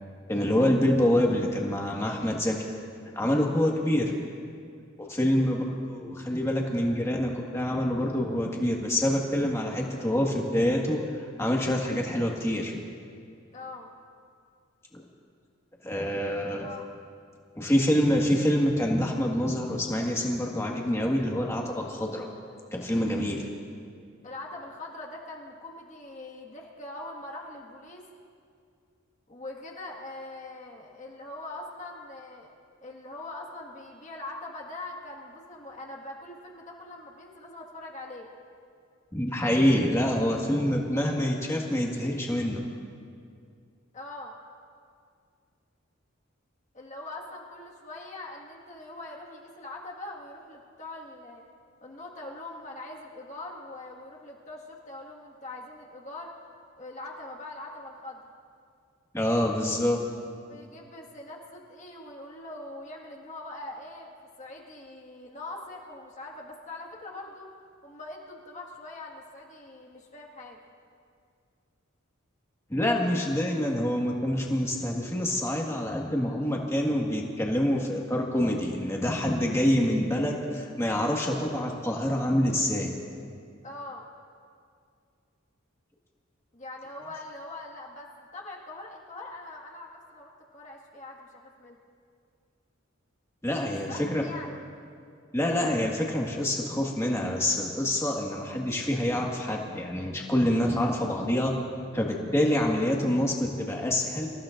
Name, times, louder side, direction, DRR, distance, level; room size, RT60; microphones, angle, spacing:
voice 1, 0.3-2.5 3.1-4.1 5.0-11.1 11.4-12.8 14.9-15.0 15.8-16.7 17.6-22.3 22.7-23.5 39.1-42.6 59.1-60.0 72.7-82.9 93.4-94.2 95.3-101.5 101.9-104.3, left 1 dB, 15° left, -1 dB, 1.7 m, -26 dB
voice 2, 13.5-13.9 16.6-16.9 24.2-28.1 29.3-32.5 32.8-38.3 43.9-44.4 46.7-51.4 51.8-56.3 56.8-58.2 60.5-67.5 67.8-70.6 83.6-84.1 86.5-91.8 93.6-94.5, left 2 dB, 35° left, -2 dB, 1.8 m, -42 dB
26.0 x 15.0 x 2.6 m, 2.3 s
head